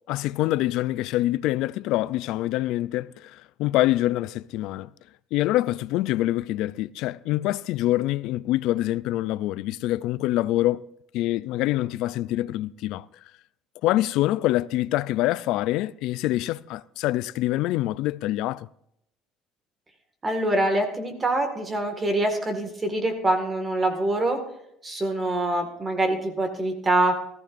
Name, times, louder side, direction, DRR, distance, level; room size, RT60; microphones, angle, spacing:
voice 1, 0.1-4.9 5.3-10.8 11.1-13.1 13.8-18.7, left 16 dB, 65° left, 0.4 m, -25 dB
voice 2, 20.2-24.4 24.8-27.2, right 1 dB, 20° right, 1.9 m, -25 dB
19.0 x 14.5 x 2.6 m
cardioid pair, 140°, 0 cm